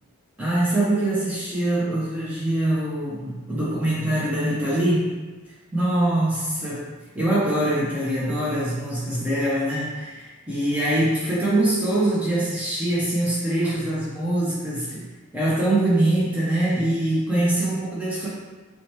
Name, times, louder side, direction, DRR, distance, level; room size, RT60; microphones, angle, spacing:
voice 1, 0.4-5.1 5.7-6.8 7.1-15.0 15.3-18.3, right 1 dB, 5° right, -9 dB, 0.5 m, -23 dB
2.8 x 2.1 x 3.0 m, 1.3 s
head